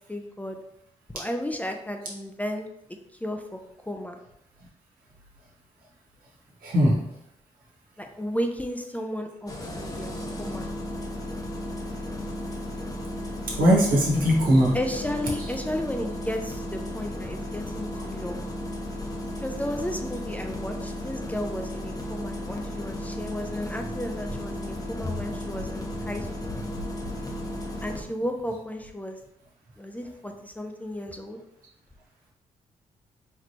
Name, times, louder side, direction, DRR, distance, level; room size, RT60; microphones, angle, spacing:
voice 1, 0.1-0.6 1.1-2.7 3.2-4.2 8.0-10.7 14.7-18.5 19.4-26.5 27.8-29.2 29.8-31.4, equal, 10° left, 4 dB, 0.5 m, -33 dB
voice 2, 6.6-7.0 13.6-14.8, equal, 75° right, -3 dB, 1.4 m, -19 dB
Engine starting, 9.5-28.0, left 1 dB, 25° left, 0.8 m, -34 dB
4.2 x 3.0 x 3.0 m, 0.80 s
supercardioid pair, 60°, 15 cm